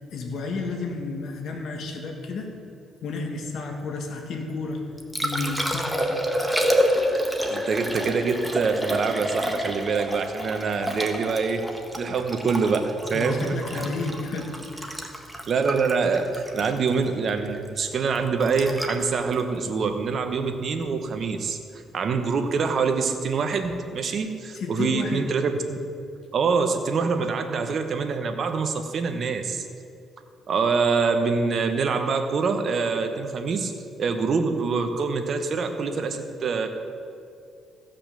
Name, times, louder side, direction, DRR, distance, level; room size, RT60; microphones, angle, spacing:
voice 1, 0.1-2.5 3.0-4.8 5.2-6.2 13.1-15.0 24.5-25.3, left 3 dB, 70° left, 3 dB, 1.8 m, -31 dB
Liquid, 4.7-20.8 23.6-23.8, equal, ahead, 1.4 m, -29 dB
voice 2, 7.5-13.8 15.5-21.6 21.9-25.8 26.3-29.7 30.5-33.7 34.0-36.7, right 5 dB, 55° right, 6 dB, 1.2 m, -25 dB
15.5 x 5.7 x 6.9 m, 2.4 s
cardioid pair, 90°, 0 cm